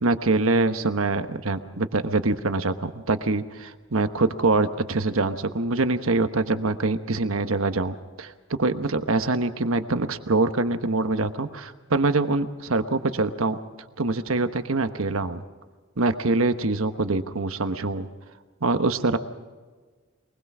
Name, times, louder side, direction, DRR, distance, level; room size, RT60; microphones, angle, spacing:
voice 1, 0.0-8.3 8.6-13.6 14.0-15.4 16.0-18.1 18.6-19.2, right 3 dB, 90° right, 9 dB, 1.1 m, -24 dB
23.0 x 20.5 x 6.1 m, 1.4 s
head